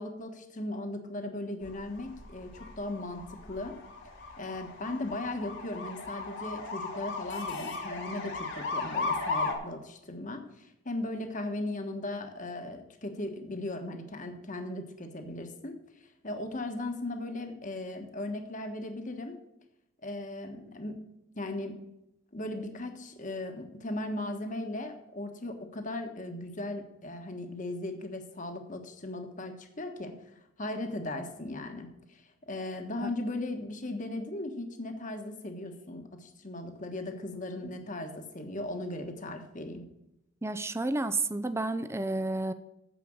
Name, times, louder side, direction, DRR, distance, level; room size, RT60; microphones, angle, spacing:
voice 1, 0.0-3.2 3.5-3.7 4.4-15.7 16.2-19.4 20.0-21.0 21.3-21.7 22.3-30.1 30.6-39.9, left 2 dB, 40° left, 5 dB, 1.4 m, -37 dB
sound 1, 1.7-9.6, left 3 dB, 60° left, 2.1 m, -36 dB
voice 2, 40.4-42.5, right 2 dB, 15° right, 10 dB, 0.5 m, -31 dB
9.3 x 7.4 x 6.4 m, 0.86 s
head